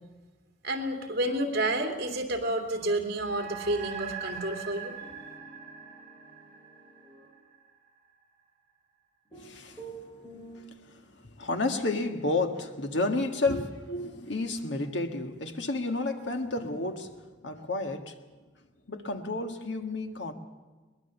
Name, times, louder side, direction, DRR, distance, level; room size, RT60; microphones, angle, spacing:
voice 1, 0.6-4.9, right 1 dB, 55° right, 2.8 m, -30 dB
sound 1, 3.2-7.9, right 7 dB, 40° right, 5.2 m, -42 dB
sound 2, 5.0-7.3 9.3-10.6, right 3 dB, 10° left, 6.1 m, -49 dB
voice 2, 9.3-10.0 10.4-18.2 18.9-20.3, left 2 dB, 80° left, 1.7 m, -31 dB
22.5 x 21.0 x 7.1 m
head